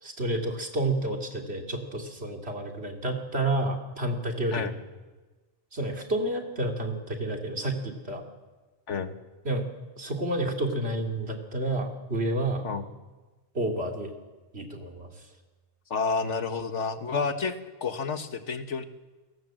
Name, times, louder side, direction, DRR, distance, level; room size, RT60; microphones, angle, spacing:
voice 1, 0.0-4.7 5.7-8.2 9.4-9.7 10.0-12.6 13.5-14.1 14.5-15.1, right 1 dB, 60° right, 2 dB, 3.2 m, -30 dB
voice 2, 15.9-18.8, left 5 dB, 75° left, 9 dB, 1.6 m, -30 dB
29.0 x 18.0 x 7.7 m, 1.2 s
omnidirectional pair, 1.2 m